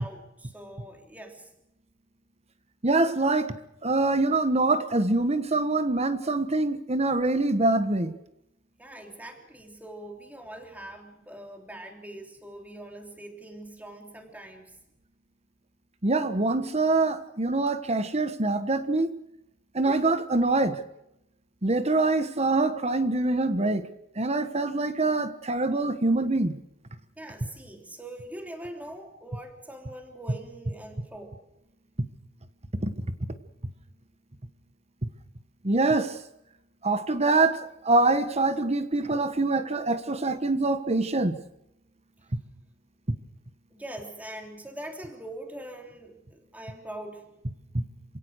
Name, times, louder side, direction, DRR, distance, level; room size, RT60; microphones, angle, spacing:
voice 1, 0.0-1.5 8.8-14.7 27.2-31.4 43.7-47.3, right 1 dB, 10° right, 3.4 m, -42 dB
voice 2, 2.8-3.5 3.8-8.1 16.0-19.1 19.7-20.8 21.6-23.8 24.2-26.6 32.8-32.9 35.6-36.2 36.8-41.4 47.7-47.8, right 2 dB, 35° right, 1.4 m, -24 dB
27.5 x 17.0 x 6.5 m
head